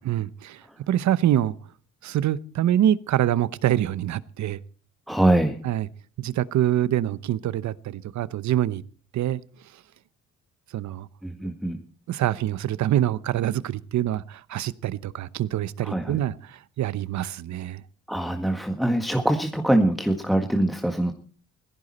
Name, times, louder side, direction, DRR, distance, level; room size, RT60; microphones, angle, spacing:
voice 1, 0.0-1.5 2.0-4.6 5.6-5.9 6.2-8.8 9.1-9.4 9.7-9.8 10.7-11.1 12.1-17.8, right 12 dB, 70° right, 17 dB, 0.9 m, -25 dB
voice 2, 5.1-5.6 11.2-11.8 15.8-16.2 18.1-21.1, right 1 dB, ahead, 4 dB, 1.7 m, -23 dB
17.5 x 15.0 x 4.3 m, 0.42 s
cardioid pair, 90°, 30 cm